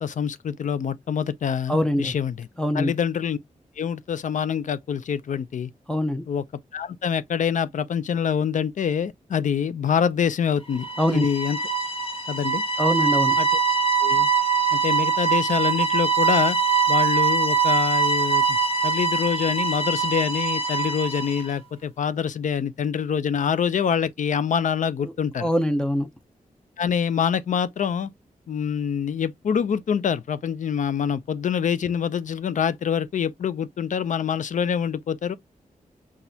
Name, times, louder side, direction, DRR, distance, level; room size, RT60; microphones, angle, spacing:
voice 1, 0.0-2.5 2.7-3.4 3.8-5.7 6.3-6.4 6.7-11.6 12.3-12.6 13.4-13.5 14.0-14.3 14.7-16.6 16.9-18.6 18.8-25.5 26.8-28.1 28.5-35.4, left 7 dB, 65° left, 0.5 m, -25 dB
voice 2, 1.7-2.1 2.6-2.9 5.9-6.2 11.0-11.3 12.8-13.4 25.0-25.1 25.4-26.1, left 1 dB, 5° left, 0.5 m, -23 dB
sound 1, 10.7-21.5, right 6 dB, 40° left, 0.9 m, -23 dB
6.0 x 2.4 x 2.7 m
wide cardioid pair, 170°, 14 cm